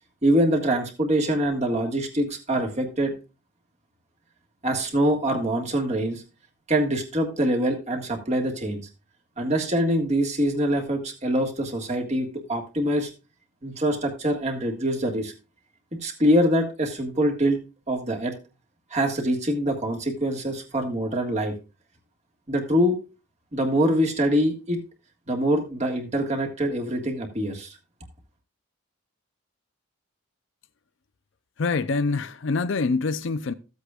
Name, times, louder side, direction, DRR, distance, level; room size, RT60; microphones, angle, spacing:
voice 1, 0.2-3.1 4.6-6.2 6.7-8.8 9.4-13.1 13.6-15.3 15.9-17.6 17.9-18.3 18.9-21.5 22.5-23.0 23.5-24.8 25.3-27.8, equal, 30° right, 1.7 m, -24 dB
voice 2, 31.6-33.5, left 4 dB, 60° left, 0.5 m, -25 dB
14.5 x 8.1 x 2.4 m
head